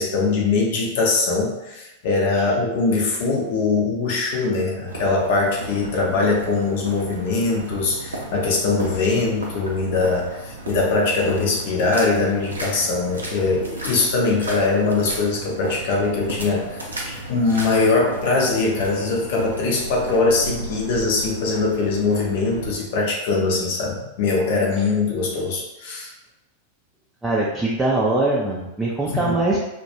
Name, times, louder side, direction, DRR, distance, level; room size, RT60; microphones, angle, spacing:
voice 1, 0.0-16.9 17.3-26.1 29.1-29.3, left 3 dB, 50° left, -1 dB, 0.6 m, -22 dB
sound 1, 4.9-22.7, right 2 dB, 75° right, 0.5 m, -34 dB
voice 2, 27.2-29.6, right 2 dB, 10° right, -5 dB, 0.4 m, -22 dB
2.3 x 2.1 x 2.9 m, 0.98 s
figure-of-eight pair, 90°, 0 cm